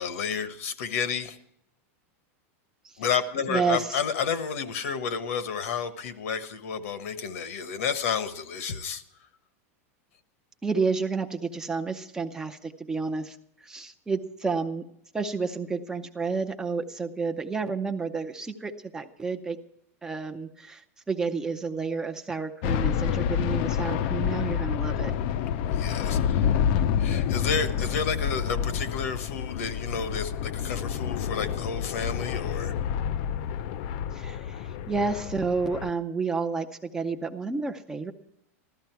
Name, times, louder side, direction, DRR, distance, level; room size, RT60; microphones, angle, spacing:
voice 1, 0.0-1.4 3.0-9.0 25.7-26.6 27.0-33.0, left 6 dB, 75° left, 1.3 m, -31 dB
voice 2, 3.5-4.0 10.6-14.8 15.1-19.6 20.0-25.1 34.1-38.1, right 4 dB, 10° right, 0.5 m, -30 dB
sound 1, 22.6-35.9, left 8 dB, 45° left, 0.4 m, -28 dB
15.0 x 13.0 x 4.6 m
supercardioid pair, 170°, 8 cm